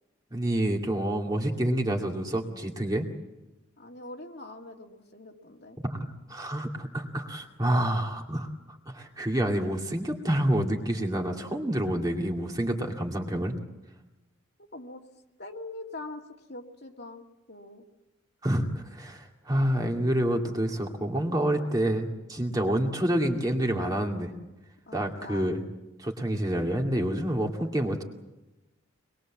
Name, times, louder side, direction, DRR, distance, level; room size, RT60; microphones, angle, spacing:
voice 1, 0.3-3.1 5.8-8.5 8.9-13.5 18.4-24.3 24.9-25.6 26.0-28.0, right 1 dB, 20° right, 1 dB, 2.4 m, -28 dB
voice 2, 3.8-5.8 14.6-15.0 15.4-16.2 16.5-17.8 24.9-25.5, left 2 dB, 50° left, 2 dB, 2.5 m, -43 dB
25.0 x 21.5 x 7.4 m, 1.0 s
head